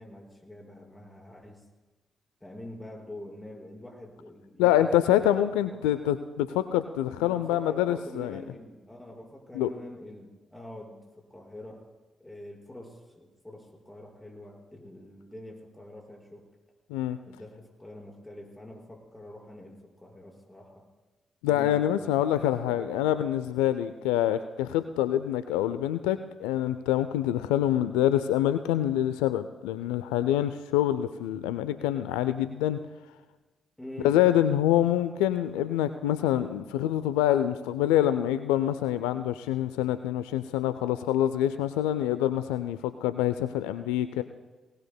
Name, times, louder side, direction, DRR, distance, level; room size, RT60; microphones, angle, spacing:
voice 1, 0.0-1.6 2.4-4.9 5.1-5.2 5.9-6.0 7.2-11.0 11.3-11.9 12.2-16.4 17.3-20.8 21.5-23.1 33.8-34.1, left 1 dB, 15° left, -2 dB, 5.3 m, -45 dB
voice 2, 4.6-8.4 9.5-9.7 16.9-17.2 21.4-32.8 34.0-44.2, left 12 dB, 80° left, 12 dB, 0.4 m, -26 dB
21.0 x 19.0 x 2.2 m, 1.2 s
hypercardioid pair, 40°, 0 cm